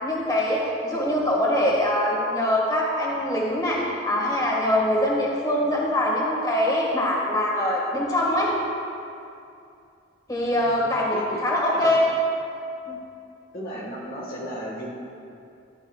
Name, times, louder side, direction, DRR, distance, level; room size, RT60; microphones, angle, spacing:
voice 1, 0.0-8.5 10.3-12.0 12.9-13.0, left 1 dB, 20° left, -4 dB, 1.9 m, -23 dB
voice 2, 10.5-11.4 11.7-12.0 13.5-14.9, equal, 45° left, -4 dB, 1.5 m, -35 dB
15.0 x 12.0 x 2.4 m, 2.6 s
head